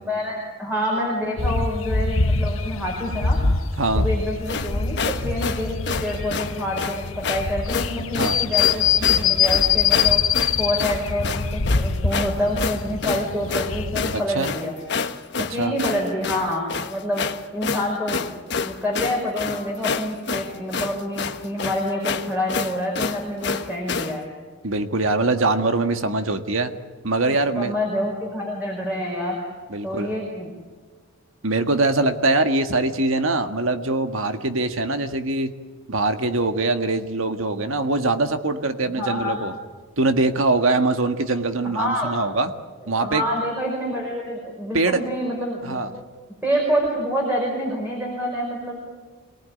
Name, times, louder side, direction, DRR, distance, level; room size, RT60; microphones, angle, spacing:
voice 1, 0.1-3.4 3.9-10.2 10.6-14.8 15.4-17.2 17.5-18.3 18.6-24.3 27.6-29.4 29.8-30.5 38.9-39.4 41.6-42.1 42.8-46.0 46.4-48.8, equal, 10° right, -1 dB, 5.2 m, -27 dB
sound 1, 1.4-14.2, left 5 dB, 75° left, 1.1 m, -24 dB
sound 2, 4.5-24.2, left 5 dB, 55° left, 1.2 m, -28 dB
voice 2, 24.6-26.7 27.0-27.7 29.7-30.1 31.4-35.5 35.9-39.5 40.0-42.5 42.9-43.2 44.7-45.0 45.6-45.9, right 2 dB, 75° right, 7 dB, 1.7 m, -22 dB
27.0 x 19.0 x 9.7 m, 1.4 s
head